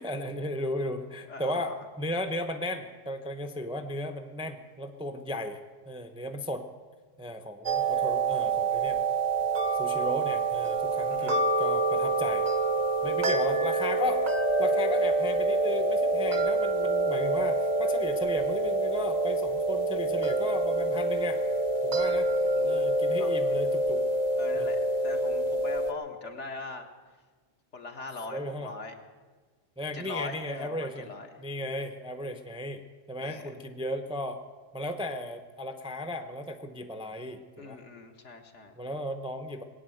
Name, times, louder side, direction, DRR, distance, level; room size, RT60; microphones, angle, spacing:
voice 1, 0.0-5.6 5.9-6.7 7.2-9.0 9.8-12.5 13.0-14.2 14.6-21.4 21.8-22.3 22.6-24.0 24.6-24.7 28.3-28.7 29.8-31.1 31.4-32.8 33.1-34.4 34.7-37.8 38.8-39.6, left 1 dB, 5° right, 7 dB, 0.7 m, -35 dB
voice 2, 1.3-1.8 11.1-11.4 16.3-16.5 22.4-22.9 23.2-23.3 24.4-26.9 27.7-28.9 29.9-31.4 33.2-33.6 37.6-38.7, left 3 dB, 60° left, 3 dB, 1.8 m, -41 dB
sound 1, 7.7-25.9, right 2 dB, 40° right, 0.8 m, -26 dB
20.0 x 9.0 x 7.9 m, 1.4 s
omnidirectional pair, 1.4 m